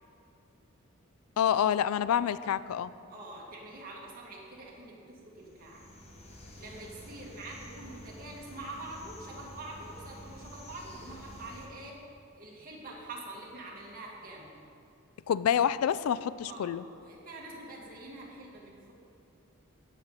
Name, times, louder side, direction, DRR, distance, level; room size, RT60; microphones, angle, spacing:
voice 1, 1.4-2.9 15.3-16.8, left 9 dB, 90° left, 16 dB, 0.3 m, -27 dB
voice 2, 3.1-5.9 6.6-12.0 12.4-14.6 16.5-18.9, right 2 dB, 45° right, -3 dB, 2.1 m, -45 dB
sound 1, 5.4-11.7, left 1 dB, 30° left, 1.1 m, -49 dB
16.5 x 6.7 x 4.1 m, 2.5 s
head